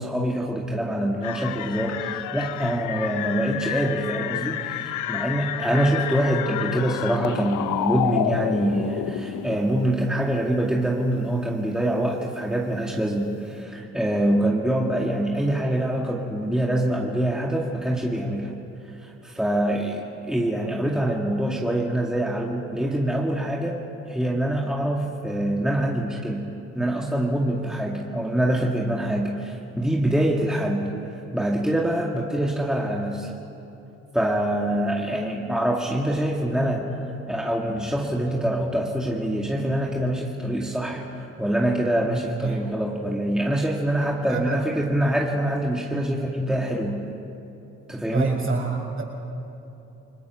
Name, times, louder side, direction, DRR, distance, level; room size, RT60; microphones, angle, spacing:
voice 1, 0.0-18.5 19.0-23.8 24.1-31.0 31.3-33.3 34.1-36.9 37.3-47.0 47.9-48.3, right 1 dB, ahead, -2 dB, 2.2 m, -25 dB
sound 1, 1.2-9.6, left 12 dB, 80° left, 0.7 m, -30 dB
voice 2, 42.0-42.7 44.3-44.6 46.0-46.2 48.1-49.0, right 4 dB, 45° right, 0 dB, 6.6 m, -28 dB
29.5 x 20.5 x 6.1 m, 2.9 s
cardioid pair, 90°, 30 cm